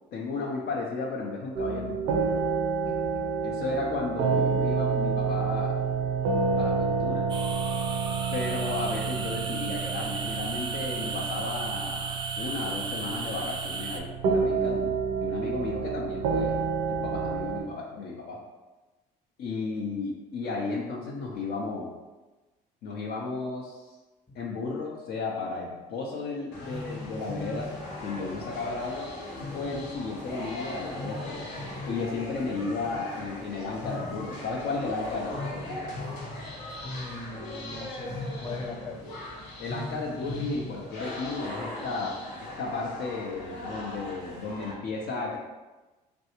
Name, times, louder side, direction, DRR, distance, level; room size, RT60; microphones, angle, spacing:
voice 1, 0.1-2.4 3.4-5.8 6.6-7.3 8.3-16.5 16.9-18.4 19.4-21.9 22.8-23.9 24.3-27.7 28.0-29.1 29.5-31.5 31.9-35.9 39.6-42.2 42.6-45.4, left 3 dB, 65° left, -2 dB, 0.6 m, -34 dB
sound 1, 1.6-17.6, right 5 dB, 85° right, 0.5 m, -29 dB
voice 2, 2.8-3.2 36.8-39.2, left 2 dB, 30° left, -3 dB, 1.0 m, -40 dB
sound 2, 7.3-14.0, right 4 dB, 25° right, 0.4 m, -35 dB
sound 3, 26.5-44.7, left 1 dB, 80° left, 0.9 m, -38 dB
3.2 x 2.6 x 2.9 m, 1.2 s
supercardioid pair, 85°, 18 cm